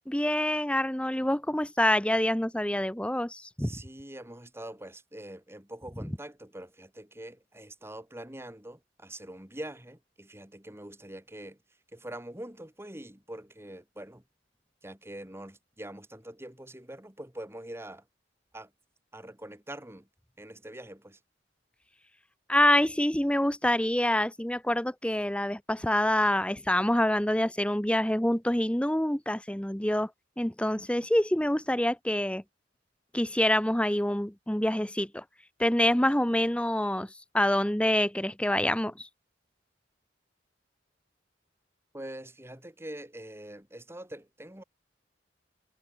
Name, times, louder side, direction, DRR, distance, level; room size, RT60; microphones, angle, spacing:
voice 1, 0.1-3.8 22.5-30.1 30.4-32.4 33.1-35.2 35.6-37.1 37.3-39.1, left 1 dB, 5° left, 1.0 m, -26 dB
voice 2, 3.6-11.6 11.9-14.2 14.8-18.1 18.5-18.7 19.1-20.1 20.4-21.2 41.9-44.6, right 1 dB, 15° right, 2.9 m, -44 dB
head